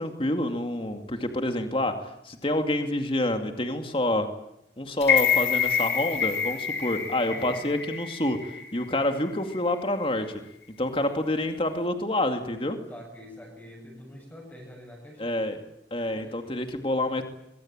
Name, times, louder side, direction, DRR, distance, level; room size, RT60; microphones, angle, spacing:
voice 1, 0.0-2.0 2.2-4.3 4.8-10.4 10.8-12.8 15.2-15.6 15.9-17.2, left 1 dB, 30° left, 6 dB, 2.4 m, -27 dB
sound 1, 5.0-9.1 9.5-9.6, left 8 dB, 70° left, 2.8 m, -27 dB
voice 2, 7.3-7.6 12.9-15.6 16.1-16.5, equal, 10° left, 0 dB, 7.8 m, -45 dB
24.0 x 23.5 x 9.0 m, 0.81 s
head